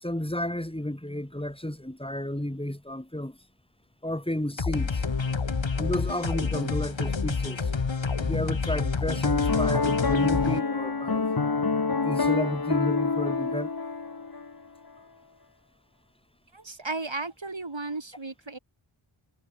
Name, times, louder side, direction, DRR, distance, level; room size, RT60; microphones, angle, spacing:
voice 1, 0.0-3.4 4.0-5.0 5.8-7.7 8.2-11.3 12.0-13.7, left 1 dB, 10° left, 3.6 m, -32 dB
sound 1, 4.6-10.6, left 5 dB, 65° left, 1.6 m, -28 dB
Piano, 9.2-14.5, left 4 dB, 45° left, 1.4 m, -26 dB
voice 2, 16.5-18.6, right 3 dB, 65° right, 4.2 m, -34 dB
wide cardioid pair, 45°, 49 cm